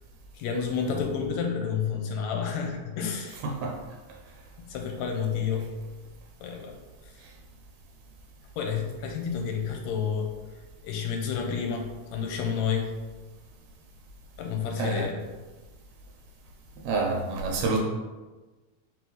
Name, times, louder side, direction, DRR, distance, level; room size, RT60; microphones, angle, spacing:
voice 1, 0.3-3.4 4.6-5.7 6.4-6.7 8.6-10.3 10.8-12.9 14.4-15.2, left 6 dB, 80° left, 2 dB, 1.8 m, -30 dB
voice 2, 3.4-3.8 14.8-15.1 16.8-17.8, right 3 dB, 75° right, 0 dB, 1.8 m, -28 dB
4.5 x 3.0 x 3.9 m, 1.2 s
omnidirectional pair, 3.3 m